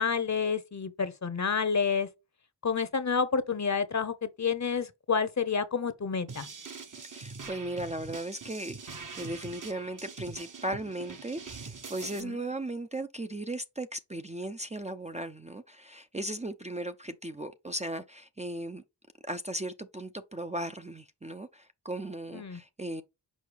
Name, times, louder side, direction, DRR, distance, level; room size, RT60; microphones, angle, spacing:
voice 1, 0.0-2.1 2.6-6.5 12.2-12.4 22.3-22.6, left 5 dB, 45° left, 0.9 m, -29 dB
sound 1, 6.3-12.2, right 4 dB, 50° right, 1.1 m, -43 dB
voice 2, 7.0-18.8 19.2-23.0, right 1 dB, 15° right, 0.5 m, -37 dB
6.3 x 4.6 x 3.4 m
cardioid pair, 50°, 41 cm